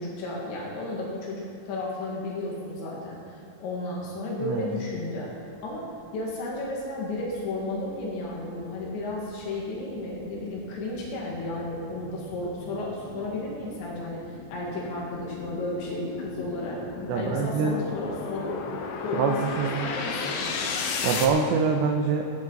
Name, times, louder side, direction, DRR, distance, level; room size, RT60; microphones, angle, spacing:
voice 1, 0.0-5.3 5.6-16.8 17.2-18.6 19.0-20.5, left 2 dB, 85° left, -4 dB, 4.5 m, -33 dB
sound 1, 6.5-6.6 7.1-21.3, left 5 dB, 70° left, 2.7 m, -36 dB
voice 2, 17.1-17.8 19.1-19.9 21.0-22.3, right 5 dB, 85° right, 0 dB, 3.2 m, -25 dB
24.0 x 10.5 x 4.1 m, 2.6 s
omnidirectional pair, 5.0 m